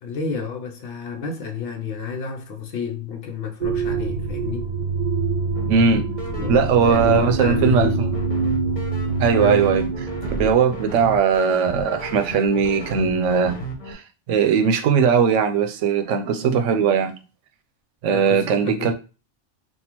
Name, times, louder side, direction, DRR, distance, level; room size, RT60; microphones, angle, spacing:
voice 1, 0.0-4.7 6.4-6.6 6.8-8.1 9.4-9.7 18.1-18.9, left 6 dB, 60° left, 0.7 m, -29 dB
sound 1, 3.6-10.5, right 4 dB, 60° right, 0.5 m, -25 dB
sound 2, 5.5-13.9, equal, 40° left, 0.9 m, -34 dB
voice 2, 5.7-6.0 6.5-8.1 9.2-9.8 10.4-13.6 13.9-17.1 18.0-18.9, right 6 dB, 80° right, 0.9 m, -19 dB
3.5 x 2.3 x 2.9 m
omnidirectional pair, 1.2 m